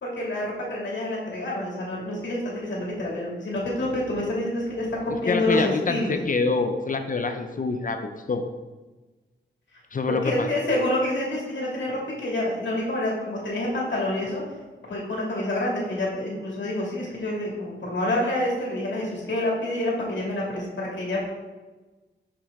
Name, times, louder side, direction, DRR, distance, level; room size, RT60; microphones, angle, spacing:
voice 1, 0.0-6.2 10.1-14.4 14.9-21.3, left 1 dB, 65° left, -4 dB, 2.3 m, -27 dB
voice 2, 5.3-8.4 9.9-10.5, left 4 dB, 45° left, 6 dB, 0.6 m, -26 dB
6.5 x 6.1 x 3.6 m, 1.2 s
wide cardioid pair, 110°, 20 cm